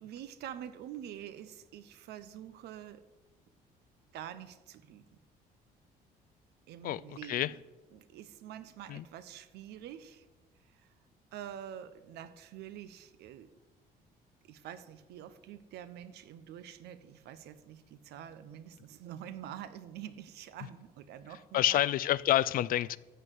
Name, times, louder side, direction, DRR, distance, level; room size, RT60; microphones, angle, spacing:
voice 1, 0.0-3.1 4.1-5.1 6.7-7.6 7.9-10.3 10.7-10.9 11.3-13.5 14.4-21.8, right 10 dB, 75° right, 0.8 m, -46 dB
voice 2, 6.8-7.5 8.9-9.0 21.5-23.0, left 13 dB, 60° left, 0.4 m, -28 dB
13.5 x 4.7 x 8.0 m
cardioid pair, 110°, 17 cm